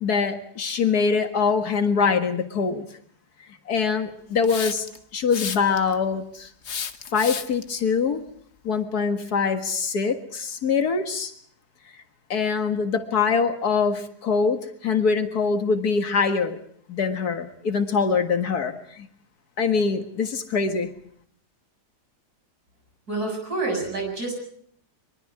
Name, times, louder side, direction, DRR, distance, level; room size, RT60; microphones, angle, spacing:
voice 1, 0.0-2.9 3.7-4.9 5.1-6.5 7.1-8.2 8.6-11.3 12.3-16.6 16.9-19.1 19.6-20.9, left 5 dB, 70° left, 6 dB, 2.2 m, -23 dB
Hiss, 4.4-5.0 5.3-5.9 6.6-7.6, left 6 dB, 50° left, 1.2 m, -31 dB
voice 2, 23.1-24.3, right 3 dB, 70° right, 2 dB, 8.0 m, -28 dB
24.5 x 23.0 x 4.8 m, 0.63 s
omnidirectional pair, 1.7 m